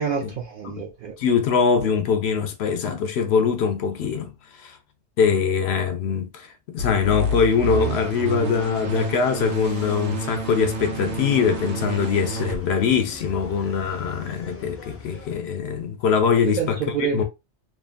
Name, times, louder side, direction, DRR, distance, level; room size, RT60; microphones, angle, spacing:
voice 1, 0.0-1.2 16.5-17.2, right 6 dB, 60° right, 0.7 m, -27 dB
voice 2, 1.2-4.3 4.6-4.8 5.2-16.8 17.1-17.2, left 6 dB, 75° left, 0.8 m, -22 dB
sound 1, 6.8-12.6, right 3 dB, 85° right, 1.0 m, -29 dB
sound 2, 7.7-15.4, left 2 dB, 20° left, 0.4 m, -43 dB
2.7 x 2.5 x 2.3 m
omnidirectional pair, 1.1 m